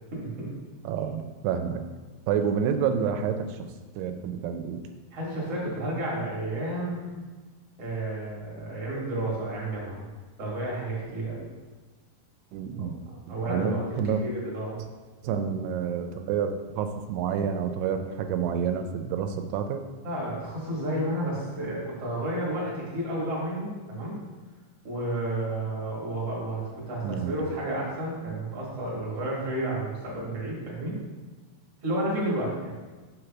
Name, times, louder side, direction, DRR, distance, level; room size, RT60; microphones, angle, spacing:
voice 1, 0.1-0.5 5.1-7.1 7.8-10.1 10.4-11.5 12.8-12.9 13.3-13.8 14.1-14.8 20.0-24.2 24.8-31.0 31.8-32.8, right 1 dB, 45° right, -5 dB, 2.2 m, -31 dB
voice 2, 0.9-1.8 2.3-3.7 4.0-4.8 12.5-13.0 13.3-14.2 15.2-19.8 27.0-27.3, right 7 dB, 85° right, 7 dB, 2.6 m, -29 dB
6.0 x 3.3 x 5.9 m, 1.3 s
omnidirectional pair, 4.8 m